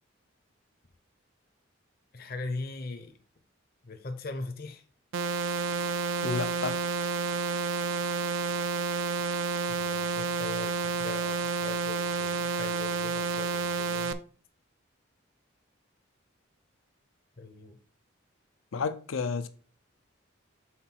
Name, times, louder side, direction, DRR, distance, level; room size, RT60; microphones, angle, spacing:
voice 1, 2.1-3.1 3.8-4.8 9.7-14.1 17.4-17.8, left 3 dB, 50° left, 0.7 m, -40 dB
sound 1, 5.1-14.1, right 4 dB, 70° right, 0.4 m, -30 dB
voice 2, 6.2-6.8 18.7-19.5, left 4 dB, 85° left, 0.5 m, -31 dB
5.8 x 4.0 x 4.4 m
head